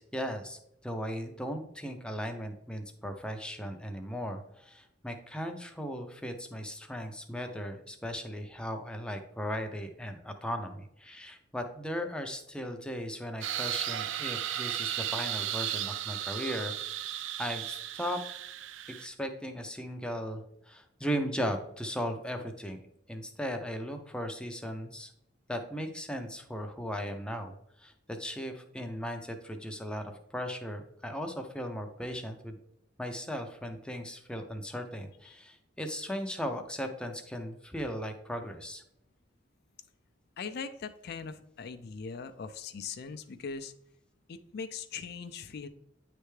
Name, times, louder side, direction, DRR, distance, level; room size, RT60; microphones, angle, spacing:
voice 1, 0.0-17.0 17.4-18.2 18.9-20.4 20.7-22.8 23.1-25.1 25.5-27.5 27.8-32.6 33.0-38.8, equal, 5° left, 5 dB, 0.5 m, -37 dB
sound 1, 13.4-19.1, right 11 dB, 75° right, 0.4 m, -35 dB
voice 2, 40.4-43.7 44.3-45.7, left 5 dB, 55° left, 10 dB, 0.4 m, -40 dB
9.1 x 3.3 x 3.2 m, 0.76 s
head